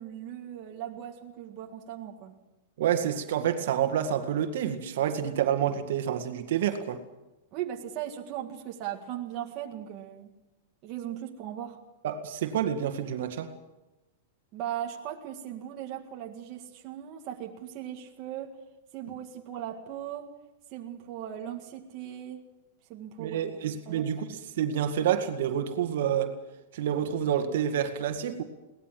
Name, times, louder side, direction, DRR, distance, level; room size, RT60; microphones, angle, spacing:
voice 1, 0.0-2.3 7.5-10.3 10.8-11.8 14.5-18.5 18.9-20.3 20.7-22.4 22.9-23.4 23.9-24.1, right 11 dB, 25° right, 0 dB, 1.9 m, -38 dB
voice 2, 2.8-7.0 12.0-13.5 23.2-26.3 26.7-28.4, right 9 dB, 55° right, 6 dB, 2.0 m, -28 dB
22.5 x 18.5 x 7.7 m, 1.0 s
supercardioid pair, 180°, 0 cm